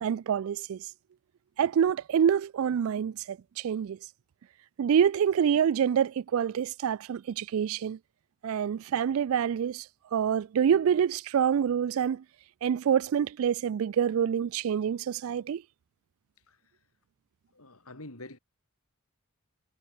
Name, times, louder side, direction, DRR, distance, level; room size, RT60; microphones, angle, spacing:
voice 1, 0.0-0.8 1.6-4.0 4.8-8.0 8.4-9.9 10.1-12.2 12.6-15.6, right 8 dB, 75° right, 0.3 m, -26 dB
voice 2, 17.5-18.4, left 2 dB, 85° left, 4.7 m, -46 dB
head